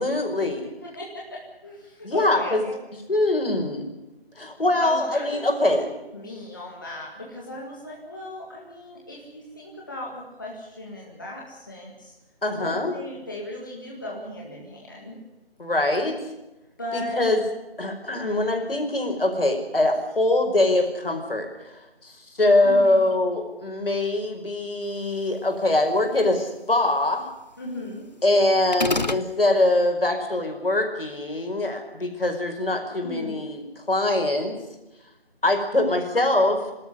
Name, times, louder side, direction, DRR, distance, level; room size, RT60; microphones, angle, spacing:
voice 1, 0.0-0.7 2.0-2.6 3.1-3.9 4.4-5.9 12.4-12.9 15.6-16.2 16.9-17.4 17.8-21.5 22.0-27.3 28.2-33.6 33.9-34.6 35.4-36.6, left 2 dB, 65° left, 3 dB, 5.1 m, -23 dB
voice 2, 0.6-2.7 4.8-5.8 6.1-12.1 12.6-15.2 16.8-17.2 22.6-23.0 27.6-28.1 33.0-33.4, left 1 dB, 20° left, -3 dB, 2.0 m, -37 dB
sound 1, 28.7-29.3, left 2 dB, 45° left, 0.8 m, -25 dB
24.5 x 13.0 x 9.7 m, 0.98 s
figure-of-eight pair, 175°, 31 cm